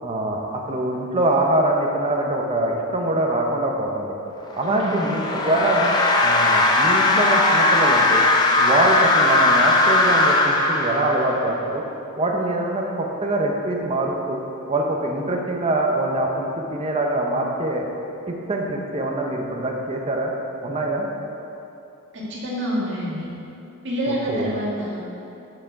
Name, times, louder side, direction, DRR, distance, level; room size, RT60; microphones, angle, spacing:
voice 1, 0.0-4.1 4.5-5.9 6.2-8.2 8.6-11.8 12.2-14.4 14.7-17.8 18.3-20.3 20.6-21.1 24.3-24.5, right 1 dB, 25° right, 0 dB, 0.7 m, -24 dB
sound 1, 4.5-11.5, left 2 dB, 20° left, 0.5 m, -19 dB
voice 2, 4.6-5.1 22.3-23.3 23.8-25.0, equal, 55° right, -5 dB, 1.8 m, -27 dB
6.6 x 6.4 x 4.7 m, 2.9 s
head